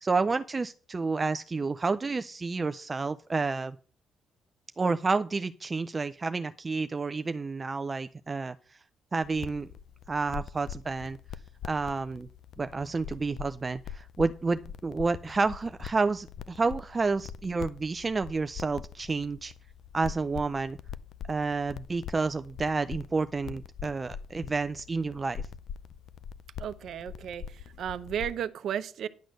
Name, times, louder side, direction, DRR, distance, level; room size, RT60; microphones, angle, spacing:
voice 1, 0.0-3.8 4.8-8.6 9.1-9.7 10.1-11.2 11.6-12.3 12.6-19.5 19.9-20.8 21.3-25.4, right 4 dB, 25° right, 0.4 m, -30 dB
sound 1, 9.2-28.5, left 8 dB, 65° left, 0.5 m, -43 dB
voice 2, 26.6-29.1, right 9 dB, 65° right, 0.7 m, -34 dB
10.5 x 6.2 x 6.4 m
cardioid pair, 135°, 0 cm